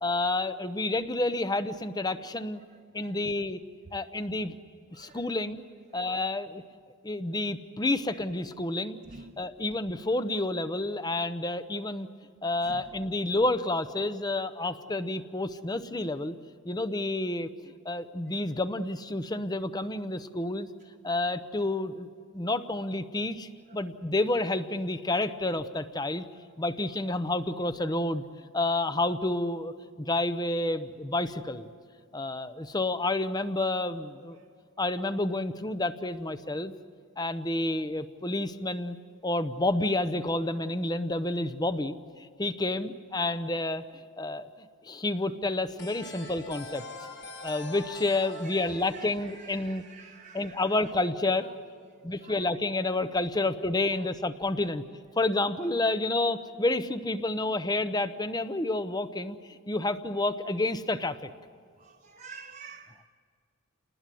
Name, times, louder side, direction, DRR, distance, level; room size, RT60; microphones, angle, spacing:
voice 1, 0.0-2.6 2.9-3.6 3.9-4.5 5.0-5.6 5.9-6.6 7.0-9.0 9.4-12.1 12.4-16.3 16.6-17.5 17.8-20.7 21.0-22.1 22.3-26.2 26.6-28.2 28.5-31.7 32.1-34.4 34.8-36.7 37.2-39.0 39.2-43.8 44.2-44.5 44.8-46.8 47.4-49.8 50.3-51.5 52.0-54.8 55.2-61.3, left 2 dB, 20° left, 12 dB, 0.7 m, -29 dB
voice 2, 9.1-9.4 12.6-12.8 46.0-46.4 48.4-50.8 51.4-51.5 52.2-52.4 53.9-54.0 61.8-63.1, right 4 dB, 40° right, 1 dB, 0.9 m, -49 dB
sound 1, 45.8-50.4, left 3 dB, 55° left, 1.7 m, -44 dB
29.0 x 20.0 x 7.7 m, 2.1 s
head